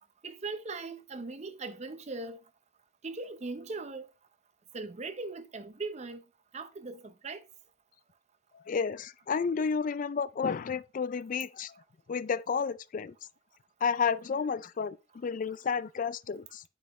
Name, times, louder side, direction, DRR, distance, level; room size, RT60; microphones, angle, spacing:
voice 1, 0.2-2.4 3.0-4.1 4.7-6.2 6.5-7.5, right 3 dB, 40° right, 0.7 m, -39 dB
voice 2, 8.7-11.7 12.1-13.1 13.8-16.6, left 6 dB, 45° left, 0.4 m, -31 dB
9.8 x 5.6 x 3.1 m
head